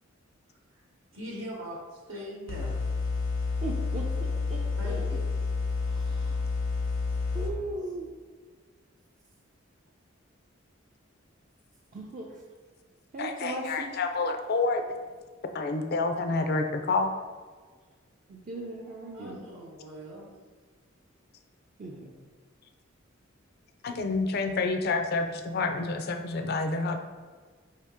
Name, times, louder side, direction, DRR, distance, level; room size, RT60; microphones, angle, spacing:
voice 1, 1.1-2.7 4.8-5.0 19.1-20.3, equal, 80° right, -4 dB, 0.9 m, -41 dB
sound 1, 2.5-7.5, left 4 dB, 85° left, 0.9 m, -29 dB
voice 2, 3.6-5.1 5.8-6.4 7.3-8.1 11.9-12.4 13.1-14.0 18.3-19.4 21.8-22.1, right 2 dB, 40° right, -2 dB, 0.4 m, -38 dB
voice 3, 13.2-14.8 15.5-17.1 23.8-27.0, left 3 dB, 50° left, 6 dB, 0.4 m, -28 dB
5.4 x 2.8 x 3.5 m, 1.5 s
head